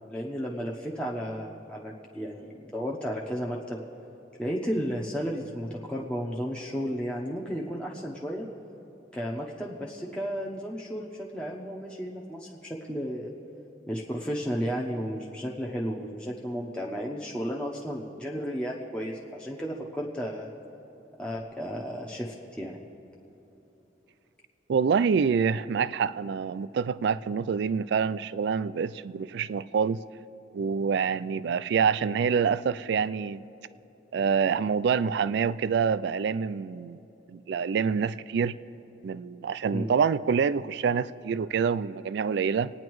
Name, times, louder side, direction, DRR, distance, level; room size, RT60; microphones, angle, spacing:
voice 1, 0.1-3.8 4.4-8.5 9.1-13.3 13.9-20.5 21.2-22.8 39.7-39.9, equal, 5° left, -4 dB, 0.8 m, -33 dB
voice 2, 24.7-30.0 30.5-33.4 34.1-37.0 37.3-38.6 39.0-42.7, right 6 dB, 65° right, 16 dB, 0.3 m, -26 dB
27.0 x 9.6 x 3.1 m, 3.0 s
head